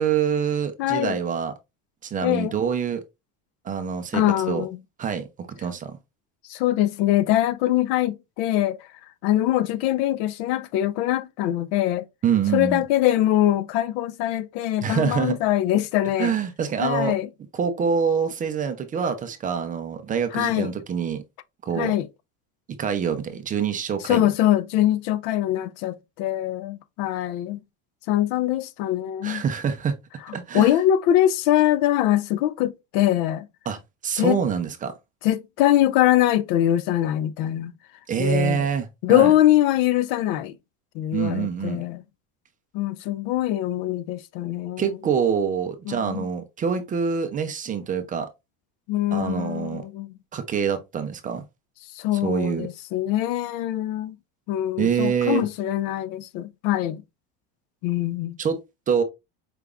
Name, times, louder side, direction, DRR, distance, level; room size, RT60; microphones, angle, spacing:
voice 1, 0.0-1.5 2.0-3.0 3.6-4.6 5.0-6.0 12.2-12.8 14.8-15.4 16.2-17.1 17.5-21.2 21.6-21.9 22.8-24.2 29.2-30.0 30.3-30.7 33.7-34.9 38.1-39.3 41.1-41.8 44.8-48.3 49.1-49.9 50.3-51.4 52.2-52.7 54.8-55.4 58.4-58.6 58.9-59.0, right 7 dB, 20° right, 0.4 m, -25 dB
voice 2, 0.8-1.2 2.2-2.5 4.1-4.8 6.5-8.8 9.2-12.1 12.5-16.3 16.8-17.3 20.3-20.7 21.8-22.1 24.0-27.6 28.1-29.4 30.5-33.5 34.2-34.4 35.2-37.7 38.2-38.7 39.0-40.5 40.9-42.0 42.7-45.0 45.9-46.3 48.9-50.1 51.9-54.2 54.5-57.0 57.8-58.4, left 13 dB, 70° left, 0.5 m, -23 dB
4.9 x 3.3 x 2.3 m
cardioid pair, 150°, 37 cm